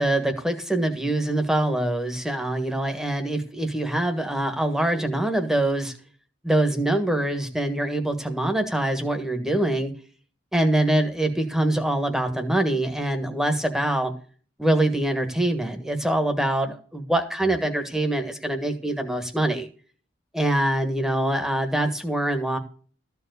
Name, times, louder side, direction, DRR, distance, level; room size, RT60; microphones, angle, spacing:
voice 1, 0.0-5.9 6.4-9.9 10.5-14.1 14.6-19.7 20.3-22.6, right 1 dB, 5° right, 5 dB, 1.4 m, -24 dB
14.0 x 4.7 x 7.9 m, 0.41 s
head